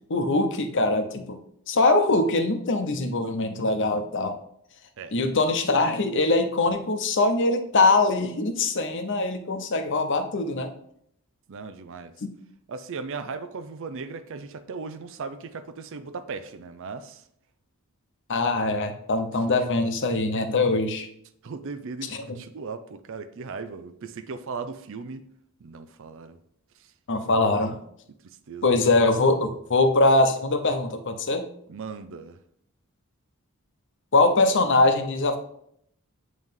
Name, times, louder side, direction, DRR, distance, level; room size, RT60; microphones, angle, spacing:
voice 1, 0.1-1.4 1.7-4.4 5.1-10.7 18.3-21.1 22.1-22.4 27.1-27.8 28.6-31.4 34.1-35.4, left 2 dB, 55° left, 0.8 m, -22 dB
voice 2, 11.5-12.1 12.7-17.2 21.4-25.2 25.6-26.4 28.2-28.8 31.7-32.4, right 4 dB, 65° right, 0.5 m, -37 dB
7.6 x 3.2 x 5.3 m
head